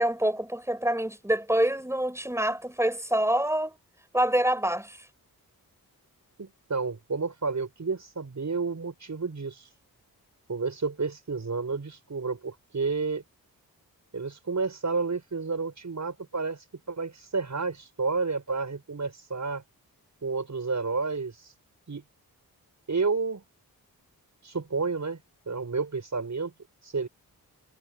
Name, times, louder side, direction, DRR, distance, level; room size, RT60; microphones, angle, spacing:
voice 1, 0.0-3.7 4.1-5.0, right 1 dB, 5° right, 6.6 m, -26 dB
voice 2, 6.4-9.7 10.5-13.2 14.1-19.6 20.2-21.5 21.9-22.0 22.9-23.4 24.4-25.2 25.5-26.5 26.8-27.1, right 4 dB, 50° right, 7.0 m, -30 dB
cardioid pair, 50°, 37 cm